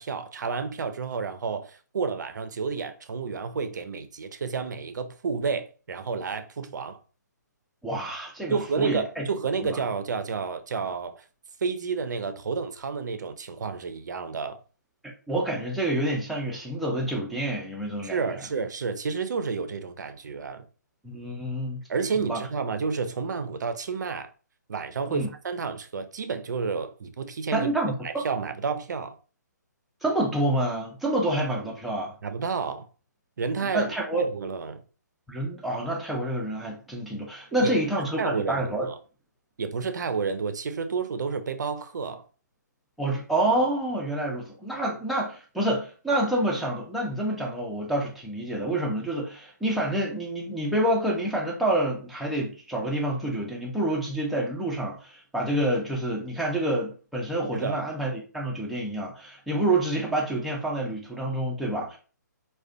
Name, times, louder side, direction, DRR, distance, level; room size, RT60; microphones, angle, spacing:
voice 1, 0.0-7.0 8.5-11.2 11.6-14.6 18.0-20.6 21.9-24.3 24.7-27.7 28.0-29.1 32.2-32.9 33.4-34.8 37.6-37.7 38.2-39.0 39.6-42.2 57.5-57.8, right 5 dB, 70° right, 0.4 m, -30 dB
voice 2, 7.8-9.3 9.6-9.8 15.3-18.4 21.0-21.8 22.2-22.4 25.1-25.3 27.5-27.9 30.0-32.1 33.6-34.3 35.3-38.9 43.0-62.0, right 1 dB, ahead, 0.4 m, -28 dB
2.3 x 2.1 x 2.5 m
figure-of-eight pair, 145°, 10 cm